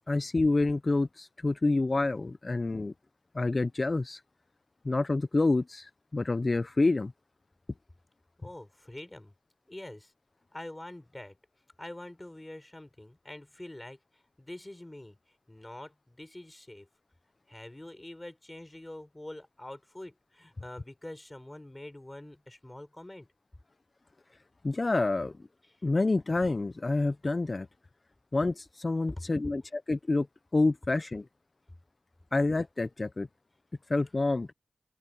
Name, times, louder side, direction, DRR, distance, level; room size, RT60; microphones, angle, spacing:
voice 1, 0.1-2.9 3.3-4.2 4.8-7.1 24.6-25.3 25.8-27.7 28.3-30.3 30.5-31.3 32.3-33.3 33.9-34.5, left 2 dB, 40° left, 0.7 m, -28 dB
voice 2, 8.4-9.3 9.7-10.1 10.5-11.4 11.8-14.0 14.4-15.2 15.5-16.9 17.5-23.3 25.7-25.8, left 1 dB, 20° left, 6.0 m, -45 dB
open air
wide cardioid pair, 65°, 0 cm